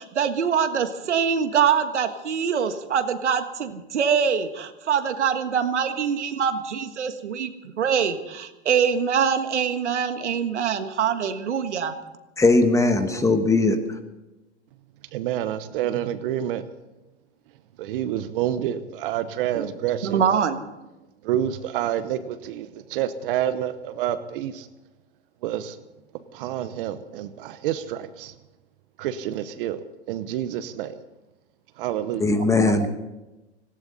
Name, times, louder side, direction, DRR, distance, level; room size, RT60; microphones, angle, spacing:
voice 1, 0.0-7.5 7.8-12.0 19.5-19.7 20.0-20.6 32.3-32.9, right 7 dB, 85° right, 9 dB, 1.5 m, -24 dB
voice 2, 12.4-13.8 32.2-32.9, left 3 dB, 10° left, 8 dB, 1.2 m, -19 dB
voice 3, 15.1-16.6 17.8-20.2 21.3-22.7 22.9-24.6 25.4-25.7 26.3-28.3 29.0-29.8 30.1-30.9 31.8-32.2, right 11 dB, 50° right, 12 dB, 1.0 m, -28 dB
18.5 x 16.5 x 4.1 m, 1.0 s
hypercardioid pair, 120°, 34 cm